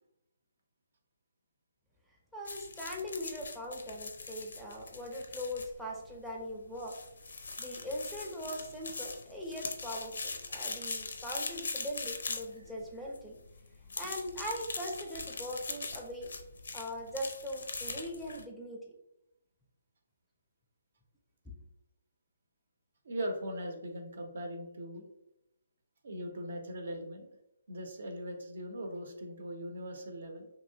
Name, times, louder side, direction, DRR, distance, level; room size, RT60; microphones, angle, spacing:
voice 1, 2.3-7.0 7.4-13.4 14.0-16.3 16.7-18.9, equal, ahead, -3 dB, 0.4 m, -40 dB
sound 1, 2.5-18.5, left 4 dB, 70° left, 0.4 m, -42 dB
voice 2, 23.0-25.0 26.0-27.3 27.7-30.5, equal, 65° right, 4 dB, 0.6 m, -40 dB
3.0 x 2.7 x 2.7 m, 0.84 s
figure-of-eight pair, 145°, 0 cm